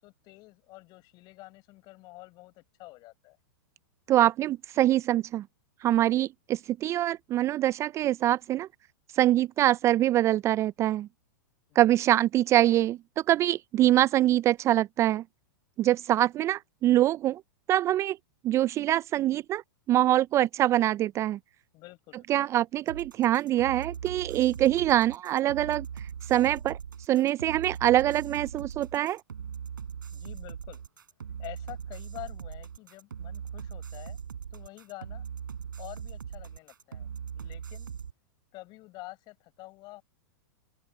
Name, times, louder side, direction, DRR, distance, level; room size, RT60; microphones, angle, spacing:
voice 1, 0.0-3.4 11.7-12.1 21.7-22.3 30.1-30.8 31.4-34.2 34.5-35.3 35.8-37.1 37.3-37.9 38.5-40.0, left 21 dB, 40° left, 5.0 m, -47 dB
voice 2, 4.1-5.4 5.8-8.7 9.1-11.1 11.8-13.0 13.3-15.2 15.8-17.4 17.7-18.2 18.4-19.6 19.9-21.4 22.3-25.9 26.3-26.8 27.1-29.2, right 13 dB, 25° right, 0.3 m, -24 dB
sound 1, 22.9-38.1, right 7 dB, 85° right, 3.9 m, -40 dB
open air
hypercardioid pair, 115°, 11 cm